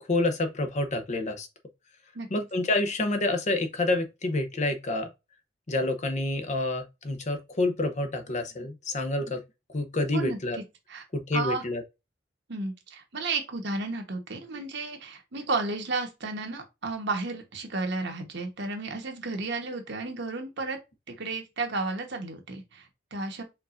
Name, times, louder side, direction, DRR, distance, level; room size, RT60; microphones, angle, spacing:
voice 1, 0.0-1.5 2.3-5.1 5.7-9.4 9.7-10.6 11.1-11.8, left 2 dB, 40° left, 0.7 m, -28 dB
voice 2, 10.1-10.6 10.9-11.0 11.3-11.6 12.5-20.8 21.1-23.4, right 3 dB, 65° right, 1.1 m, -33 dB
4.6 x 3.7 x 2.5 m
head